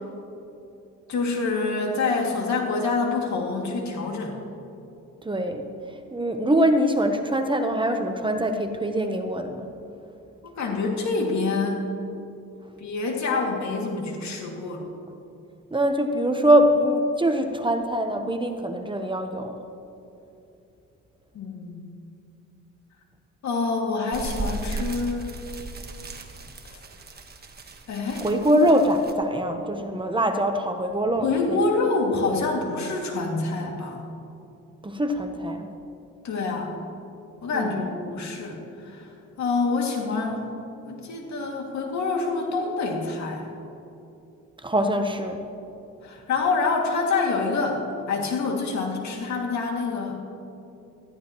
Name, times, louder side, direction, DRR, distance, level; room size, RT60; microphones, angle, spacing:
voice 1, 1.1-4.4 10.4-11.9 12.8-14.9 21.3-21.8 23.4-25.4 26.7-26.8 27.9-28.3 31.2-34.0 36.2-36.7 37.4-39.1 39.4-40.5 40.9-43.5 46.0-50.2, left 3 dB, 65° left, 0 dB, 2.4 m, -26 dB
voice 2, 5.2-5.7 6.1-9.7 15.7-19.6 28.2-31.6 34.8-35.7 37.5-38.0 44.6-45.4, right 1 dB, 15° right, 5 dB, 1.0 m, -23 dB
sound 1, 24.1-29.1, right 3 dB, 30° right, 1.4 m, -36 dB
19.0 x 13.5 x 3.1 m, 2.7 s
cardioid pair, 90°, 30 cm